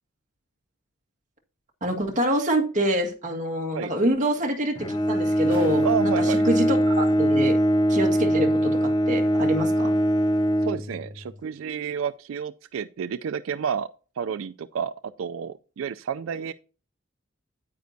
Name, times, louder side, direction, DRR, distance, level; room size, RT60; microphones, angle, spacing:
voice 1, 1.8-7.6 7.9-10.0, right 1 dB, 40° right, 1.7 m, -26 dB
sound 1, 2.1-2.3 4.0-4.1 4.3-6.6 7.5-7.6, left 1 dB, 10° right, 5.4 m, -45 dB
Bowed string instrument, 4.7-11.4, equal, 20° left, 0.4 m, -22 dB
voice 2, 5.8-6.4 10.6-13.9 14.2-14.9 15.2-16.5, right 7 dB, 80° right, 0.4 m, -30 dB
9.4 x 9.3 x 2.7 m
head